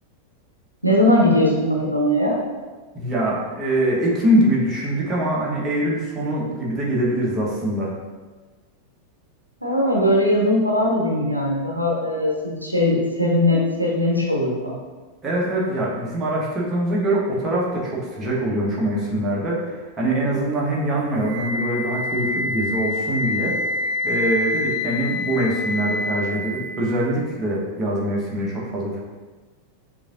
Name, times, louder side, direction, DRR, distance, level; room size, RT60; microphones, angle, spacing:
voice 1, 0.8-2.4 9.6-14.8, left 1 dB, 90° right, -3 dB, 0.7 m, -20 dB
voice 2, 2.9-7.9 15.2-23.5 24.0-29.0, right 1 dB, 20° right, -5 dB, 1.3 m, -23 dB
Wind instrument woodwind instrument, 21.2-27.2, left 2 dB, 40° right, 0.6 m, -27 dB
6.4 x 2.8 x 2.6 m, 1.3 s
figure-of-eight pair, 90°, 0 cm